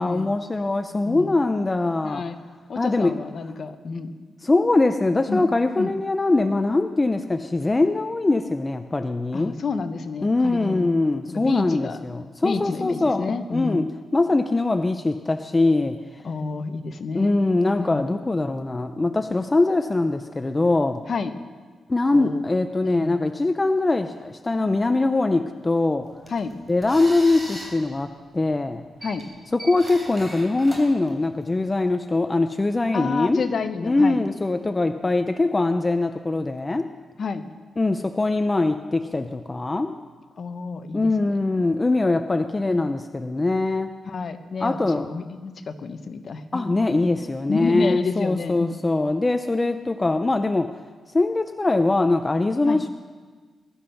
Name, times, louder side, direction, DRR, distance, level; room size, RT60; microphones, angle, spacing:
voice 1, 0.0-2.2 2.8-3.2 4.4-9.6 10.2-13.9 14.1-16.0 17.1-21.0 21.9-26.1 26.7-28.8 29.5-33.5 33.8-36.9 37.8-39.9 40.9-43.9 44.6-45.1 46.5-50.7 51.1-52.9, left 2 dB, 20° left, 7 dB, 0.5 m, -22 dB
voice 2, 2.0-2.4 2.7-4.1 5.3-5.4 5.8-5.9 9.3-10.9 11.3-12.0 12.4-13.9 16.2-17.3 17.8-18.1 21.1-21.3 22.1-22.4 22.8-23.1 26.3-26.5 29.0-29.2 32.9-34.2 37.2-37.4 40.4-41.3 42.6-42.8 44.1-46.8 47.2-48.7 52.7-52.8, left 4 dB, 50° left, 8 dB, 1.0 m, -29 dB
sound 1, 26.0-31.7, equal, 10° right, 3.5 m, -40 dB
20.0 x 11.5 x 5.8 m, 1.5 s
wide cardioid pair, 140°, 0 cm